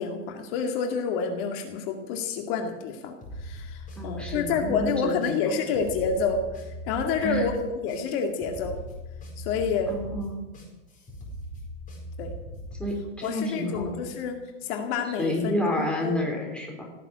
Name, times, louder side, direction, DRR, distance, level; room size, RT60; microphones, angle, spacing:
voice 1, 0.0-6.4 6.9-8.8 9.4-9.9 12.2-12.3 13.2-14.4 14.6-16.2, left 5 dB, 50° left, 4 dB, 2.3 m, -28 dB
sound 1, 3.2-13.9, equal, 20° left, 4.8 m, -40 dB
voice 2, 4.0-5.4 7.2-7.5 9.9-10.4 12.7-14.0 15.2-16.9, left 1 dB, 5° left, -1 dB, 3.8 m, -29 dB
17.5 x 7.6 x 9.6 m, 1.1 s
supercardioid pair, 150°, 37 cm